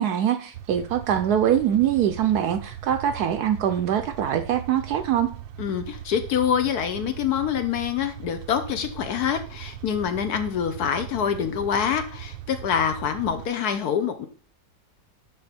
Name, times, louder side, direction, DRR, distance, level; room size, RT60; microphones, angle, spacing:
voice 1, 0.0-5.3, right 10 dB, 70° right, 9 dB, 1.0 m, -23 dB
sound 1, 0.5-13.5, right 11 dB, 90° right, 1.3 m, -39 dB
voice 2, 5.6-14.3, left 8 dB, 65° left, 8 dB, 1.1 m, -26 dB
10.5 x 3.9 x 4.1 m, 0.42 s
omnidirectional pair, 2.0 m